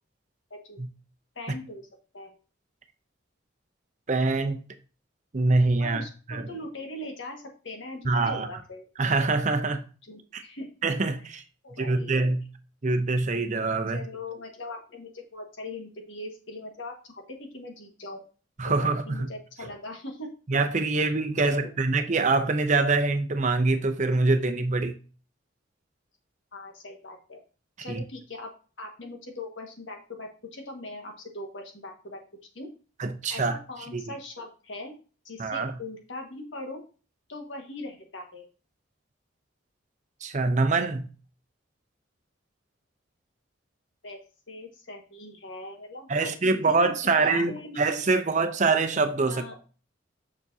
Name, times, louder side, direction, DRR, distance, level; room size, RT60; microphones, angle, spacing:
voice 1, 1.3-1.9 2.1-2.3 5.8-8.9 10.0-10.7 11.2-12.2 13.9-18.2 18.6-20.3 20.9-21.1 21.4-21.7 26.5-27.4 27.8-28.5 28.8-32.2 32.5-32.7 33.3-34.9 35.2-36.8 37.3-38.4 44.0-47.8 49.2-49.5, left 2 dB, 80° left, 1.6 m, -40 dB
voice 2, 4.1-4.6 5.3-6.0 6.3-6.4 8.0-8.5 9.0-9.8 10.3-10.4 10.8-11.4 11.8-12.4 12.8-14.0 18.6-19.3 20.5-25.0 27.9-28.0 33.0-33.5 33.9-34.0 35.4-35.7 40.2-41.1 46.1-49.5, right 3 dB, 40° right, 0.6 m, -24 dB
7.0 x 6.0 x 2.7 m
head